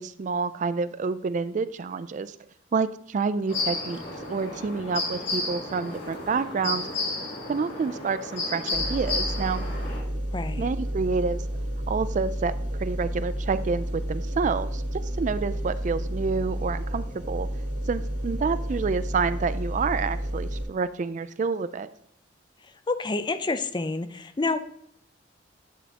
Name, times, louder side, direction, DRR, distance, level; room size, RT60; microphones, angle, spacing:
voice 1, 0.0-2.3 2.7-4.0 4.3-6.9 7.5-9.7 10.6-11.4 11.9-17.5 17.9-21.9, right 4 dB, 40° right, 14 dB, 0.3 m, -28 dB
sound 1, 3.5-10.0, left 2 dB, 65° left, 3.6 m, -32 dB
sound 2, 8.7-20.6, equal, 80° right, 2.9 m, -31 dB
voice 2, 10.3-10.7 22.9-24.6, left 3 dB, 25° left, 11 dB, 0.5 m, -28 dB
10.0 x 6.4 x 2.9 m, 0.70 s
head